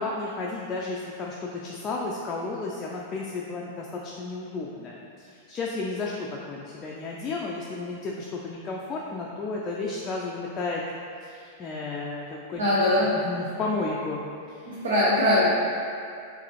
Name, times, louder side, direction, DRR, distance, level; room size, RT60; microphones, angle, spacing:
voice 1, 0.0-10.8 11.2-12.6 13.0-14.2 14.5-14.8, left 3 dB, 25° left, -3 dB, 0.4 m, -33 dB
voice 2, 12.6-13.1 14.7-15.5, left 1 dB, 70° right, -8 dB, 0.7 m, -21 dB
4.7 x 2.6 x 3.0 m, 2.4 s
figure-of-eight pair, 95°, 0 cm